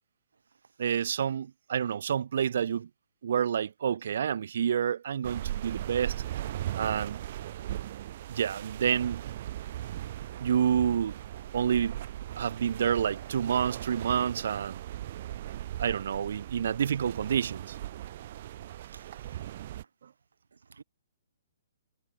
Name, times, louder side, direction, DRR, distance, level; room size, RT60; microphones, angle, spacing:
voice 1, 0.8-2.9 3.2-6.1 6.7-7.2 8.3-9.2 10.4-11.2 11.5-12.0 12.3-14.8 15.8-17.8, right 8 dB, 65° right, 1.5 m, -28 dB
sound 1, 5.2-19.8, right 13 dB, 45° right, 2.1 m, -38 dB
voice 2, 18.8-19.5 20.7-20.8, right 5 dB, 90° right, 5.5 m, -55 dB
hypercardioid pair, 150°, 0 cm